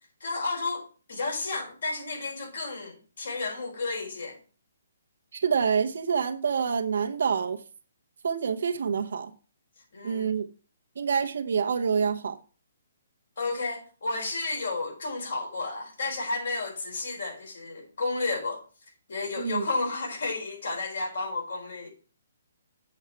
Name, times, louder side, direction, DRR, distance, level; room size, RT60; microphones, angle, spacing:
voice 1, 0.2-4.4 9.9-10.3 13.4-18.6 19.1-21.9, left 3 dB, 70° left, 4.0 m, -32 dB
voice 2, 5.3-7.6 8.2-9.3 10.0-10.5 11.0-12.4 19.4-19.7, right 6 dB, 70° right, 0.9 m, -27 dB
7.9 x 5.6 x 4.6 m
hypercardioid pair, 145°, 0 cm